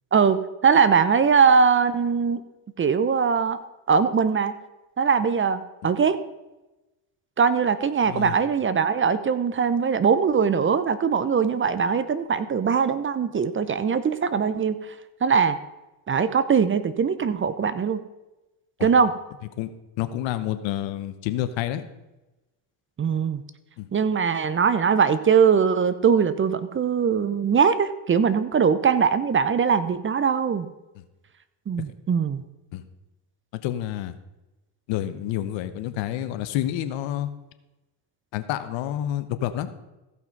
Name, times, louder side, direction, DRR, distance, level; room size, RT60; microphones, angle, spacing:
voice 1, 0.6-2.4 2.8-3.6 3.9-4.5 5.0-6.2 7.4-14.8 15.2-15.6 16.1-18.0 18.8-19.1 23.0-23.4 23.9-30.7 31.7-32.4, right 6 dB, 25° right, 13 dB, 0.7 m, -21 dB
voice 2, 8.0-8.3 18.8-18.9 19.6-19.7 20.0-21.9 23.8-23.9 32.7-32.8 33.6-34.1 34.9-37.3 38.3-39.7, left 12 dB, 75° left, 11 dB, 1.1 m, -28 dB
15.5 x 5.7 x 5.3 m, 1.0 s
supercardioid pair, 100°, 46 cm